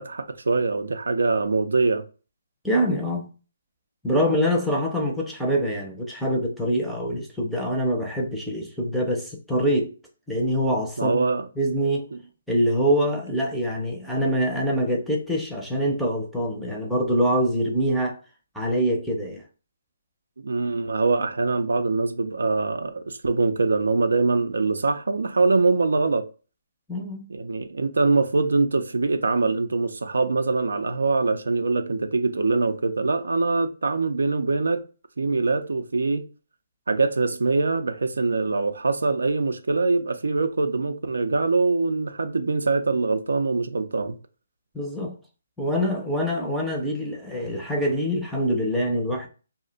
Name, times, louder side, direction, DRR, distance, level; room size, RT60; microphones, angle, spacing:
voice 1, 0.0-2.1 11.0-11.5 20.4-26.3 27.3-34.8 35.2-36.3 36.9-44.2, right 3 dB, 85° right, 0.4 m, -23 dB
voice 2, 2.6-3.3 4.0-9.9 10.3-11.2 11.6-12.1 12.5-18.2 18.5-19.4 26.9-27.3 44.7-45.2 45.6-49.3, equal, ahead, 0.5 m, -24 dB
2.4 x 2.1 x 3.7 m
hypercardioid pair, 155°, 0 cm